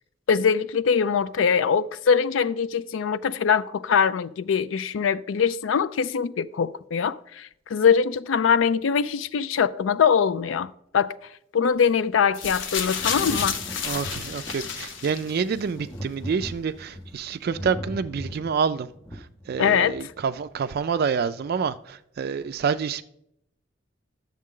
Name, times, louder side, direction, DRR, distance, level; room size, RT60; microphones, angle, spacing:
voice 1, 0.3-11.2 11.5-13.6 19.6-20.0, left 6 dB, 85° left, 0.4 m, -22 dB
sound 1, 12.3-15.6 16.5-16.6, left 6 dB, 65° left, 0.8 m, -30 dB
Thunder, 12.9-20.3 21.4-21.5, equal, 15° left, 0.6 m, -40 dB
voice 2, 13.8-18.9 19.5-23.0, right 6 dB, 50° right, 0.3 m, -27 dB
10.5 x 7.3 x 3.7 m
head